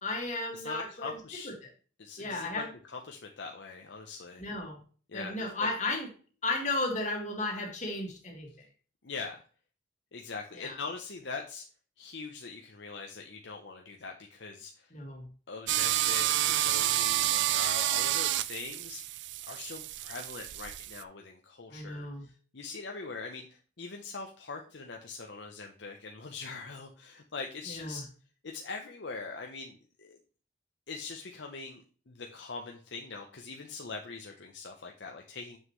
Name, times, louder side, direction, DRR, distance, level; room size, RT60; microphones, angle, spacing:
voice 1, 0.0-1.2 1.4-1.7 2.2-2.7 4.4-4.8 5.1-6.1 6.4-8.7 10.5-10.8 14.9-15.3 21.7-22.3 27.7-28.0, left 2 dB, 40° left, 1 dB, 1.8 m, -34 dB
voice 2, 0.5-1.5 2.0-4.4 5.1-5.7 9.0-9.4 10.1-11.6 12.0-14.9 15.5-19.0 19.4-28.1 28.4-30.2 30.9-35.6, left 4 dB, 65° left, 2 dB, 0.8 m, -42 dB
sound 1, 15.7-21.0, right 14 dB, 70° right, 0.4 m, -29 dB
7.3 x 6.3 x 3.1 m, 0.39 s
head